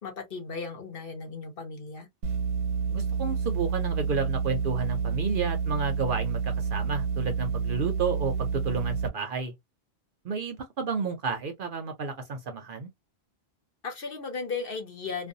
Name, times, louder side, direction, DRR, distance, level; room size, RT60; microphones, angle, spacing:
voice 1, 0.0-2.1 13.8-15.3, left 4 dB, 55° left, 1.0 m, -36 dB
sound 1, 2.2-9.1, right 6 dB, 90° right, 1.0 m, -29 dB
voice 2, 2.9-9.5 10.2-12.9, right 4 dB, 60° right, 0.6 m, -31 dB
2.5 x 2.2 x 2.5 m
omnidirectional pair, 1.2 m